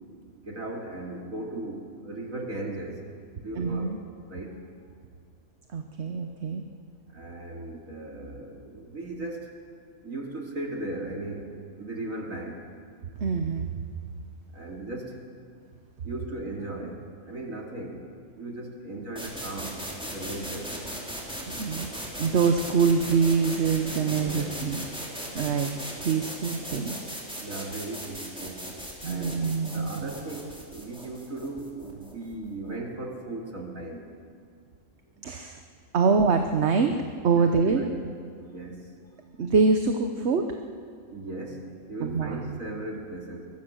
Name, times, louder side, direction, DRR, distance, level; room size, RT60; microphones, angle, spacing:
voice 1, 0.4-3.0 3.3-4.0 4.3-4.6 7.1-9.5 10.0-12.6 14.5-15.2 16.0-18.0 18.4-19.8 20.1-20.8 23.8-24.6 27.4-28.7 29.0-34.0 35.2-35.3 37.4-38.9 41.1-43.5, right 2 dB, 80° right, 1 dB, 3.1 m, -37 dB
voice 2, 3.5-4.0 5.7-6.6 13.2-13.7 21.5-21.9 22.2-24.9 25.3-25.7 26.0-27.0 29.0-30.1 35.2-35.6 35.9-37.0 37.2-37.9 39.4-40.6 42.0-42.6, right 5 dB, 55° right, 5 dB, 1.3 m, -25 dB
sound 1, 19.1-32.9, equal, 5° right, 3.7 m, -38 dB
22.5 x 22.0 x 6.4 m, 2.2 s
omnidirectional pair, 1.4 m